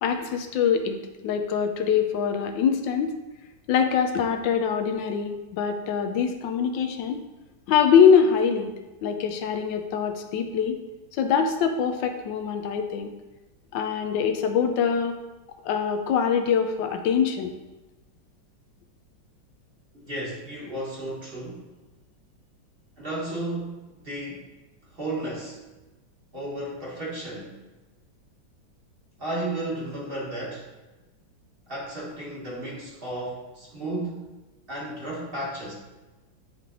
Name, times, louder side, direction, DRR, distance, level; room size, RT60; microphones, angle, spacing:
voice 1, 0.0-1.0 1.2-3.1 3.7-7.2 7.7-8.7 9.0-10.8 11.2-13.1 13.7-15.2 15.6-17.5, left 7 dB, 80° left, 6 dB, 1.3 m, -23 dB
voice 2, 20.0-21.7 23.0-24.4 24.9-25.6 26.3-27.5 29.2-30.7 31.7-34.3 34.7-35.7, right 1 dB, 35° right, -5 dB, 1.2 m, -33 dB
9.5 x 3.3 x 3.7 m, 1.1 s
omnidirectional pair, 2.1 m